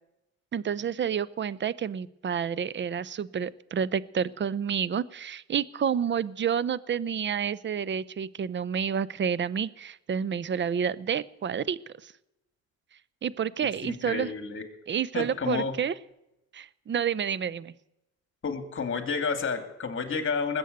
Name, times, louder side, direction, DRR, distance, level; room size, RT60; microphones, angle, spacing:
voice 1, 0.5-12.1 13.2-14.3 14.9-15.9 16.5-17.7, right 7 dB, 40° right, 20 dB, 0.7 m, -29 dB
voice 2, 14.0-14.6 15.1-15.7 18.4-20.6, left 5 dB, 45° left, 8 dB, 2.7 m, -30 dB
19.5 x 8.1 x 8.0 m, 0.90 s
cardioid pair, 90°, 30 cm